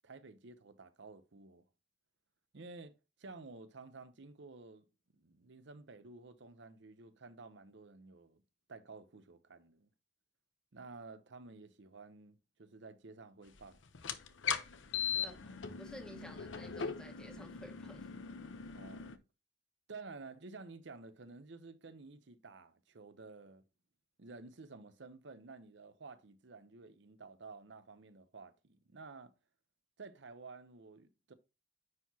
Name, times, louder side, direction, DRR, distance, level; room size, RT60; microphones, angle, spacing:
voice 1, 0.0-1.6 2.5-4.9 5.1-8.4 8.7-9.9 10.7-13.8 15.1-15.4 18.7-19.2 19.9-23.6 24.2-29.3 30.0-31.3, right 3 dB, 70° right, 0.8 m, -52 dB
sound 1, 13.9-19.2, left 7 dB, 85° left, 0.8 m, -39 dB
voice 2, 15.2-18.1, equal, 5° left, 1.4 m, -52 dB
9.6 x 4.7 x 2.8 m
head